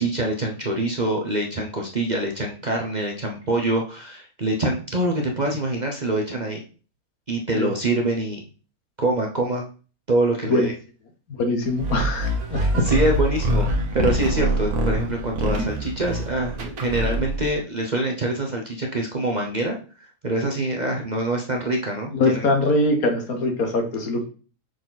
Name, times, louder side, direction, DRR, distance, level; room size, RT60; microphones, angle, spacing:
voice 1, 0.0-6.6 7.3-8.4 9.0-9.6 10.1-10.7 12.6-13.7 13.9-19.8 20.2-22.5, right 2 dB, 35° right, 0 dB, 0.8 m, -25 dB
voice 2, 11.3-12.6 22.1-24.2, left 2 dB, 70° left, 4 dB, 1.7 m, -22 dB
sound 1, 11.8-17.5, equal, 75° right, 1.7 m, -24 dB
6.3 x 4.6 x 4.0 m, 0.38 s
omnidirectional pair, 1.6 m